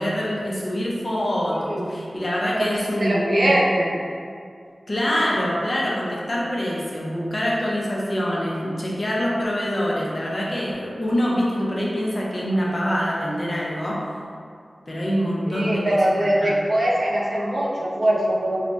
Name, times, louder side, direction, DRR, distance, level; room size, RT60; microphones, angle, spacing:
voice 1, 0.0-3.6 4.9-14.1 14.9-16.5, equal, 45° left, -5 dB, 0.6 m, -25 dB
voice 2, 1.5-1.8 3.0-3.9 15.5-18.6, right 1 dB, 65° right, -4 dB, 0.5 m, -22 dB
3.2 x 2.1 x 2.6 m, 2.3 s
wide cardioid pair, 55°, 0 cm